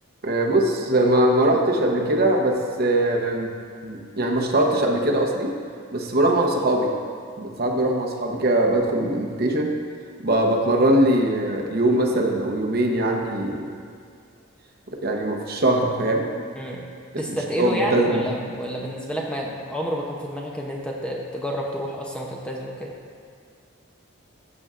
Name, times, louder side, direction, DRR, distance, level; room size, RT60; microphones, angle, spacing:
voice 1, 0.2-3.5 3.8-5.5 5.9-6.9 7.4-9.7 10.2-13.7 15.0-16.4 17.1-18.2, right 1 dB, 45° right, 1 dB, 0.9 m, -21 dB
voice 2, 16.6-16.9 17.2-22.9, equal, 5° left, -2 dB, 0.7 m, -29 dB
14.5 x 6.8 x 2.5 m, 2.2 s
head